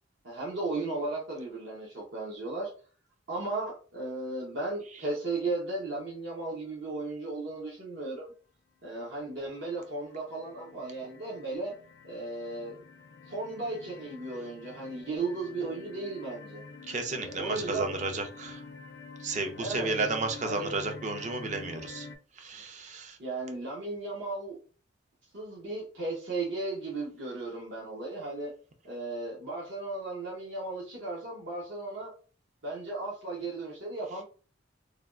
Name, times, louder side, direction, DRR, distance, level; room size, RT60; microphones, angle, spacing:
voice 1, 0.2-2.7 3.3-8.3 8.8-11.7 12.0-12.8 13.3-16.6 17.1-17.9 19.6-20.1 20.4-20.7 23.2-24.6 25.3-28.5 28.8-32.1 32.6-34.2, right 2 dB, 60° right, -5 dB, 0.8 m, -35 dB
sound 1, 9.0-9.4 9.9-22.2, left 4 dB, 60° left, 0.4 m, -47 dB
voice 2, 16.9-18.6 19.2-22.1 22.4-23.2, right 3 dB, 40° right, 5 dB, 0.5 m, -33 dB
3.3 x 2.3 x 2.4 m, 0.38 s
head